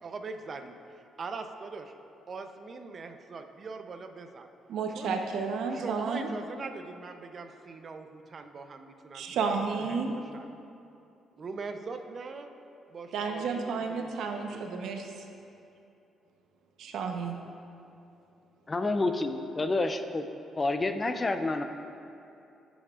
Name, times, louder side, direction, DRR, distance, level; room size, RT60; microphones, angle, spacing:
voice 1, 0.0-1.9 2.3-4.5 5.0-5.1 5.7-9.5 9.9-10.5 11.3-12.5 12.9-14.6, right 4 dB, 45° right, 6 dB, 0.7 m, -42 dB
voice 2, 4.7-6.3 9.1-10.1 13.1-15.1 16.8-17.4, right 5 dB, 80° right, 3 dB, 0.9 m, -31 dB
voice 3, 18.7-20.3 20.6-21.6, left 2 dB, 25° left, 8 dB, 0.5 m, -29 dB
15.0 x 7.1 x 2.5 m, 2.7 s
cardioid pair, 90°, 0 cm